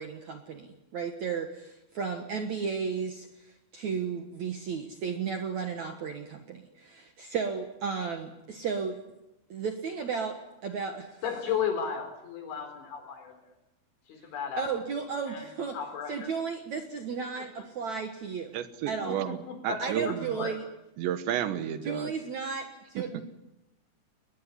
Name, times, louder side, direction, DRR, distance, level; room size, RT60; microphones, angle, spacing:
voice 1, 0.0-9.0 9.5-10.4 10.6-11.2 14.6-15.8 16.1-18.5 18.9-19.2 19.8-20.6 21.8-23.2, right 5 dB, 65° right, 6 dB, 1.9 m, -34 dB
voice 2, 11.2-13.4 14.1-14.6 15.3-15.5 15.7-16.3 19.1-20.5, left 7 dB, 85° left, 6 dB, 6.3 m, -34 dB
voice 3, 18.5-19.4 19.6-20.5 21.0-22.1 23.0-23.1, right 10 dB, 80° right, 11 dB, 3.5 m, -32 dB
21.0 x 20.5 x 9.9 m, 0.93 s
omnidirectional pair, 5.2 m